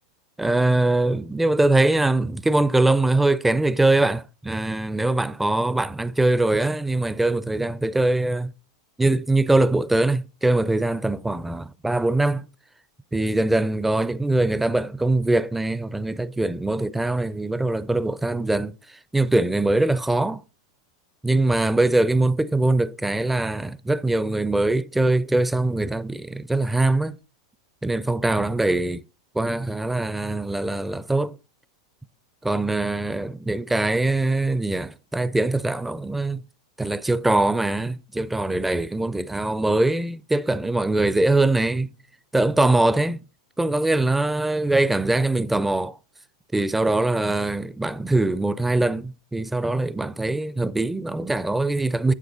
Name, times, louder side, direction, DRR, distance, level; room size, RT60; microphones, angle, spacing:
voice 1, 0.4-8.5 9.0-12.5 13.1-20.4 21.2-27.2 27.8-29.0 29.3-31.4 32.4-36.4 36.8-41.9 42.3-43.2 43.6-46.0 46.5-52.1, right 2 dB, 5° right, 0.5 m, -22 dB
9.9 x 7.6 x 3.9 m
hypercardioid pair, 95°, 2 cm